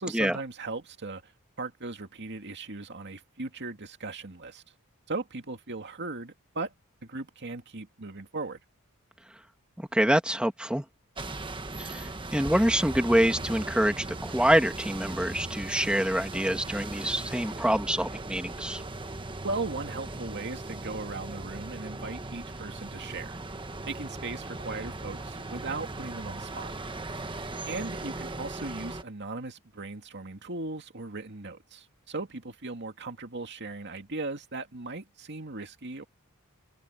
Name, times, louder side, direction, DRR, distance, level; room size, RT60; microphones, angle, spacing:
voice 1, 0.0-1.3 1.6-4.6 5.1-6.7 7.0-8.6 19.4-23.4 23.9-26.7 27.7-36.0, right 3 dB, 55° right, 2.3 m, -37 dB
voice 2, 9.9-10.8 11.8-18.8, equal, 5° right, 1.8 m, -26 dB
sound 1, 11.2-29.0, right 2 dB, 25° right, 1.3 m, -38 dB
head